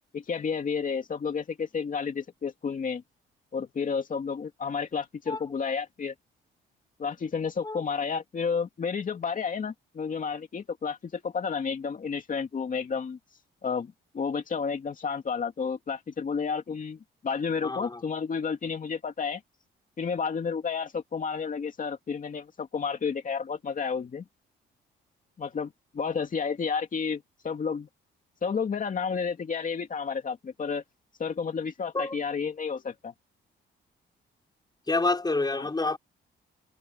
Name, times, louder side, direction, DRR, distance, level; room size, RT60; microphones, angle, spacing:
voice 1, 0.1-3.0 3.5-6.1 7.0-13.2 13.6-19.4 20.0-24.2 25.4-27.9 28.4-30.8 31.2-33.1 35.5-35.7, left 5 dB, 40° left, 2.5 m, -31 dB
voice 2, 17.6-18.0 31.9-32.2 34.9-36.0, left 3 dB, 20° left, 5.7 m, -28 dB
cardioid pair, 90°, 20 cm